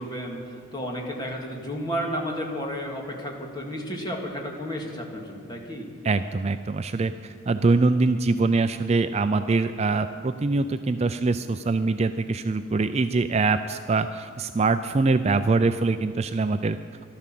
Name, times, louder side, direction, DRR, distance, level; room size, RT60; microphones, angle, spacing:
voice 1, 0.0-5.9, equal, 20° left, 0 dB, 2.0 m, -32 dB
voice 2, 6.0-16.8, right 3 dB, 30° right, 10 dB, 0.3 m, -23 dB
14.5 x 12.5 x 7.5 m, 2.3 s
head